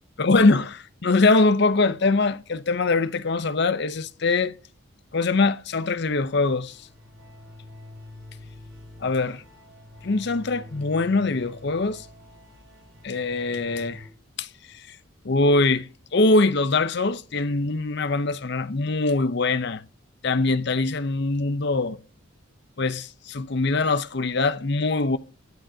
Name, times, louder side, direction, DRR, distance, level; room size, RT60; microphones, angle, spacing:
voice 1, 0.2-4.5 5.1-6.8 9.0-9.4 10.0-12.1 13.0-14.1 14.4-14.5 15.2-15.9 16.1-19.8 20.2-22.0 22.8-25.2, left 3 dB, 55° left, 0.7 m, -22 dB
sound 1, 5.9-14.1, left 1 dB, 55° right, 7.2 m, -46 dB
22.5 x 10.0 x 2.8 m
head